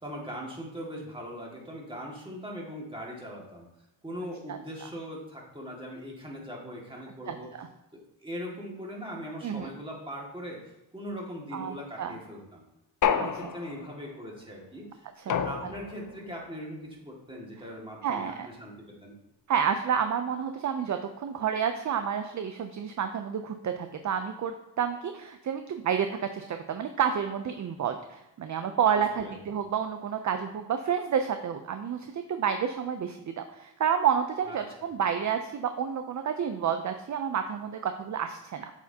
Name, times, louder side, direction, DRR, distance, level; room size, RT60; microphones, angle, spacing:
voice 1, 0.0-3.7 4.0-7.5 7.9-10.6 10.9-12.6 13.1-18.7 19.0-19.1 29.2-29.3 34.5-34.6, equal, 10° right, -2 dB, 2.0 m, -40 dB
voice 2, 4.5-4.9 7.3-7.7 9.4-9.7 11.5-12.1 13.2-13.5 15.2-15.3 18.0-18.5 19.5-38.7, right 8 dB, 40° right, 7 dB, 0.5 m, -30 dB
sound 1, 13.0-14.0 15.3-16.1, left 8 dB, 40° left, 0.5 m, -29 dB
7.9 x 4.7 x 2.8 m, 0.91 s
cardioid pair, 80°, 47 cm